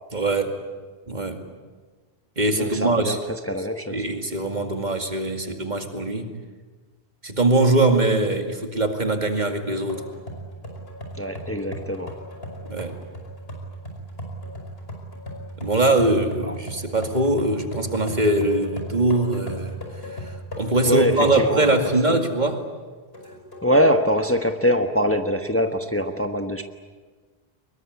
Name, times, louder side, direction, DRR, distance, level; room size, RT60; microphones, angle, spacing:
voice 1, 0.1-0.5 1.1-1.4 2.4-3.2 3.6-6.3 7.2-10.0 12.7-12.9 15.6-19.7 20.1-22.6, right 2 dB, 45° right, 5 dB, 2.4 m, -22 dB
voice 2, 2.5-3.2 3.5-4.0 11.2-12.2 16.5-16.6 20.8-21.8 22.1-22.2 23.6-26.6, equal, 15° left, 6 dB, 1.2 m, -23 dB
sound 1, 9.9-21.8 22.3-22.4 23.1-23.7, equal, 70° left, 5.7 m, -36 dB
24.0 x 21.5 x 9.7 m, 1.4 s
omnidirectional pair, 1.0 m